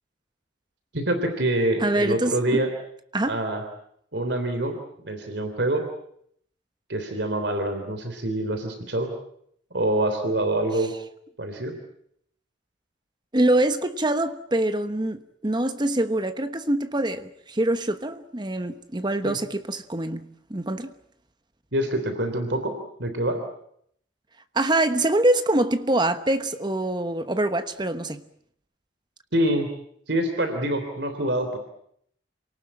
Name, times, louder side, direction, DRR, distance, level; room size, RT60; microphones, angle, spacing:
voice 1, 0.9-2.7 3.3-3.6 4.1-4.7 5.0-5.8 6.9-9.1 9.7-10.9 11.4-11.7 19.2-19.3 21.7-22.7 23.0-23.4 29.3-29.7 30.1-31.6, right 1 dB, 65° right, 3.3 m, -25 dB
voice 2, 1.8-2.7 3.1-3.4 13.3-20.9 24.5-28.2, right 1 dB, 25° right, 1.1 m, -24 dB
27.5 x 18.5 x 8.7 m
head